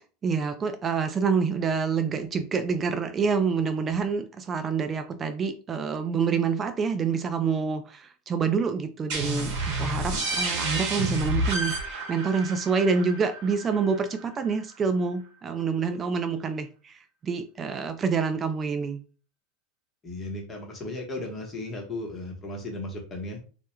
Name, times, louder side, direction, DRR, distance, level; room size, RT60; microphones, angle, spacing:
voice 1, 0.2-19.0, right 5 dB, 30° right, 9 dB, 0.3 m, -27 dB
sound 1, 9.1-14.5, right 1 dB, 55° right, 0.9 m, -30 dB
voice 2, 20.0-23.4, left 2 dB, 25° left, 0 dB, 0.9 m, -35 dB
2.2 x 2.0 x 3.0 m, 0.37 s
hypercardioid pair, 95°, 0 cm